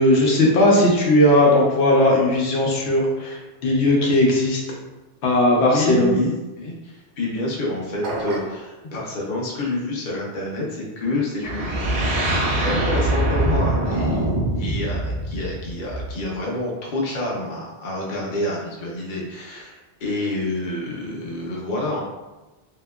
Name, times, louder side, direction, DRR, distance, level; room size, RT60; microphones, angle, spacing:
voice 1, 0.0-4.6 5.2-6.1, left 1 dB, 90° left, -2 dB, 1.0 m, -17 dB
voice 2, 5.7-11.9 12.3-14.3 14.6-22.0, left 1 dB, 50° left, -3 dB, 0.8 m, -28 dB
sound 1, 8.0-8.7, right 2 dB, 80° right, 0.9 m, -29 dB
sound 2, 11.4-16.3, right 1 dB, 45° right, 0.6 m, -23 dB
2.9 x 2.8 x 2.3 m, 1.1 s
omnidirectional pair, 1.1 m